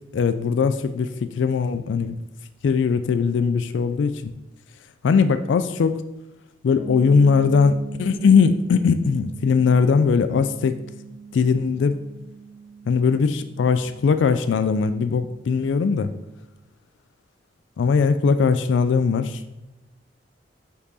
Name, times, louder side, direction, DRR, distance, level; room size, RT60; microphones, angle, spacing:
voice 1, 0.1-2.2 2.6-4.3 5.0-6.0 6.6-10.8 11.3-12.0 12.9-16.1 17.8-19.4, left 5 dB, 80° left, 11 dB, 0.3 m, -20 dB
sound 1, 6.8-16.4, right 5 dB, 35° right, 1.4 m, -41 dB
5.5 x 4.5 x 4.1 m, 0.96 s
head